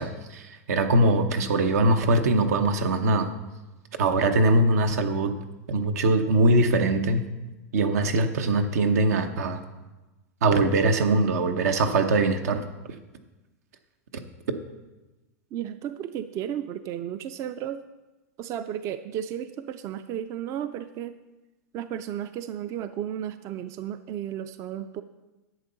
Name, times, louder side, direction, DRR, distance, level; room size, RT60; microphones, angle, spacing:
voice 1, 0.0-3.3 4.0-5.3 5.7-7.2 7.7-9.6 10.4-12.6, right 2 dB, 80° right, 8 dB, 1.0 m, -22 dB
voice 2, 15.5-17.8 18.4-21.2 21.7-25.0, right 10 dB, 35° right, 12 dB, 0.4 m, -33 dB
11.0 x 7.7 x 4.0 m, 1.1 s
hypercardioid pair, 125°, 8 cm